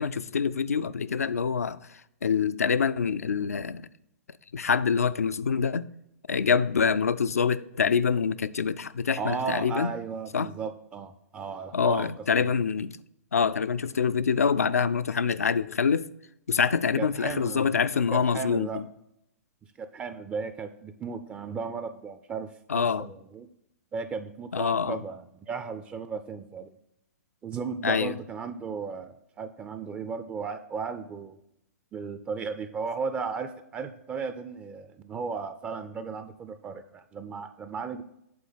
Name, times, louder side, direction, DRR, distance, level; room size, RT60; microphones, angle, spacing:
voice 1, 0.0-3.8 4.5-5.9 6.3-9.9 10.3-10.5 11.7-13.0 13.3-16.1 16.5-18.8 22.7-23.1 24.5-25.0 27.8-28.2, left 6 dB, 70° left, 0.3 m, -25 dB
voice 2, 9.2-12.1 17.0-17.7 18.1-18.8 19.8-23.5 23.9-26.7 27.4-31.4 31.9-38.0, right 5 dB, 15° right, 0.4 m, -35 dB
8.5 x 3.8 x 5.7 m
figure-of-eight pair, 110°, 8 cm